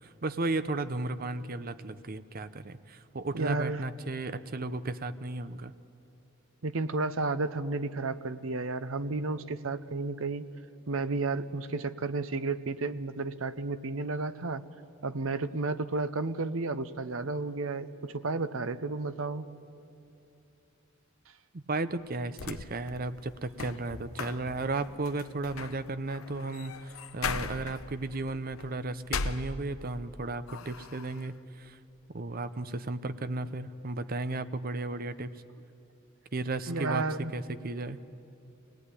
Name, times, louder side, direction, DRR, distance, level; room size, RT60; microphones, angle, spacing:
voice 1, 0.0-5.7 21.5-31.8 32.1-35.3 36.3-37.1 37.3-38.0, right 2 dB, 45° right, 12 dB, 0.7 m, -34 dB
voice 2, 3.3-3.8 6.6-10.4 10.9-14.6 15.0-19.5 36.7-37.3, right 3 dB, 75° right, 13 dB, 0.8 m, -32 dB
sound 1, 22.3-30.1 30.5-31.3, left 4 dB, 85° left, 0.9 m, -39 dB
24.5 x 18.0 x 9.9 m, 2.7 s
head